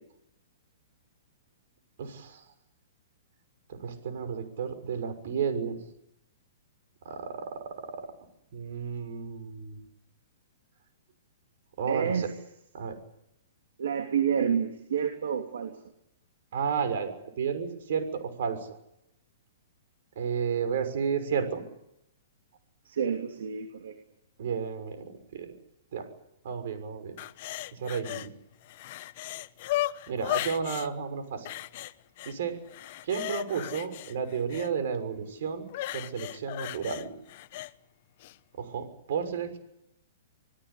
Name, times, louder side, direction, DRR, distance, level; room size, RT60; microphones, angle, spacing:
voice 1, 2.0-2.4 3.7-5.8 7.0-8.1 8.5-9.8 11.8-12.3 12.7-13.0 16.5-18.8 20.1-21.6 24.4-25.5 25.9-26.1 26.4-27.1 27.7-28.3 30.1-31.5 32.2-32.6 33.0-35.7 35.9-37.1 38.6-39.6, right 6 dB, 60° right, 9 dB, 6.3 m, -32 dB
voice 2, 11.9-12.3 13.8-15.7 22.8-23.9, right 7 dB, 80° right, 3 dB, 3.2 m, -29 dB
sound 1, 27.2-28.3 28.6-30.9 31.5-32.3 32.7-34.7 35.7-37.7 38.2-38.3, left 16 dB, 45° left, 1.0 m, -35 dB
27.5 x 18.0 x 8.6 m, 0.80 s
hypercardioid pair, 155°, 0 cm